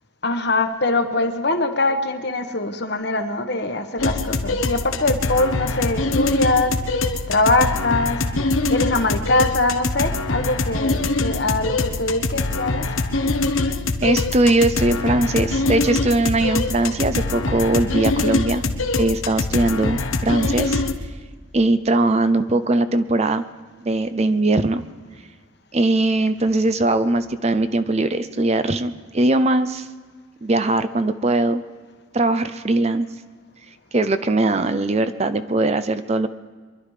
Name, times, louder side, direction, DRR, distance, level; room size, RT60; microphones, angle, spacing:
voice 1, 0.2-6.8 7.3-8.2 8.7-12.9, left 2 dB, 55° left, 7 dB, 1.2 m, -22 dB
sound 1, 4.0-20.9, left 3 dB, 80° left, 1.1 m, -23 dB
voice 2, 14.0-18.6 18.9-20.8 21.5-23.4 23.8-24.8 25.7-29.9 30.4-31.6 32.1-33.1 33.9-36.3, right 2 dB, 30° right, 11 dB, 0.6 m, -20 dB
24.0 x 12.0 x 4.9 m, 1.5 s
head